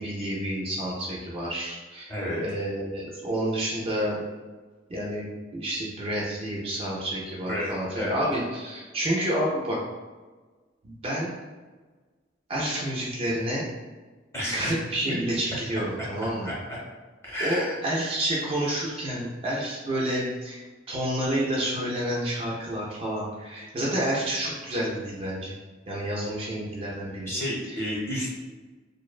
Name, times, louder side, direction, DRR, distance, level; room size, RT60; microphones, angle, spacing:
voice 1, 0.0-2.1 2.4-4.2 4.9-5.3 5.5-9.8 10.8-11.3 12.5-13.7 14.5-16.5 17.4-25.6 25.9-27.3 27.7-27.8, right 1 dB, 30° right, -5 dB, 0.4 m, -29 dB
voice 2, 2.1-2.4 7.4-8.2 14.3-14.7 15.0-15.1 16.4-16.5 17.2-17.8 27.3-28.3, equal, 15° left, -7 dB, 0.7 m, -31 dB
2.5 x 2.1 x 2.3 m, 1.3 s
head